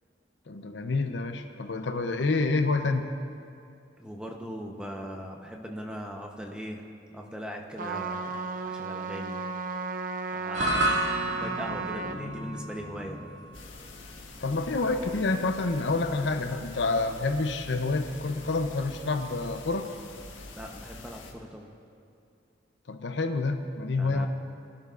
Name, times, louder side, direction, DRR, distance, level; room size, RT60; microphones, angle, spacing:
voice 1, 0.5-3.1 14.4-19.9 22.9-24.3, left 3 dB, 70° left, 7 dB, 0.7 m, -28 dB
voice 2, 4.0-6.8 7.1-8.3 8.6-9.4 10.3-11.0 11.3-13.3 20.5-21.7 24.0-24.3, equal, 5° right, 1 dB, 0.9 m, -39 dB
Trumpet, 7.8-12.2, right 4 dB, 45° right, 0.6 m, -34 dB
sound 1, 10.5-18.9, right 1 dB, 75° right, 2.3 m, -34 dB
sound 2, 13.5-21.3, left 2 dB, 90° left, 1.5 m, -45 dB
22.0 x 11.5 x 2.5 m, 2.5 s
head